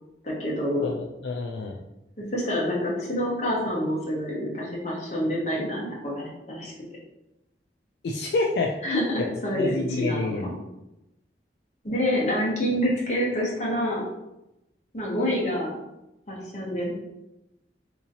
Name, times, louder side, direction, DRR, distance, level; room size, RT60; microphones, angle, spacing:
voice 1, 0.2-0.9 2.2-6.7 8.8-10.6 11.8-14.0 14.9-15.8 16.3-16.9, equal, 40° left, -4 dB, 1.0 m, -27 dB
voice 2, 0.8-1.8 8.0-8.8 9.5-10.5, left 3 dB, 65° left, 0 dB, 0.3 m, -28 dB
3.8 x 2.9 x 2.7 m, 0.93 s
head